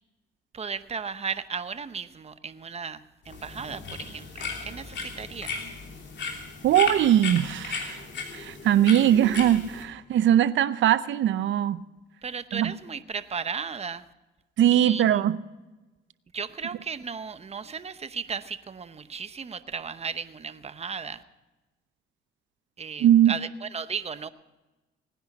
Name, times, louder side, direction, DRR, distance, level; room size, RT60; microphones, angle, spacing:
voice 1, 0.5-5.5 12.2-14.0 14.7-15.0 16.3-21.2 22.8-24.3, right 6 dB, 30° right, 12 dB, 0.8 m, -35 dB
sound 1, 3.3-9.8, left 4 dB, 60° left, 3.0 m, -36 dB
voice 2, 6.6-8.0 8.3-11.8 12.5-12.7 14.6-15.4 23.0-23.4, right 11 dB, 70° right, 15 dB, 0.7 m, -21 dB
18.0 x 10.0 x 5.9 m, 1.1 s
cardioid pair, 90°, 20 cm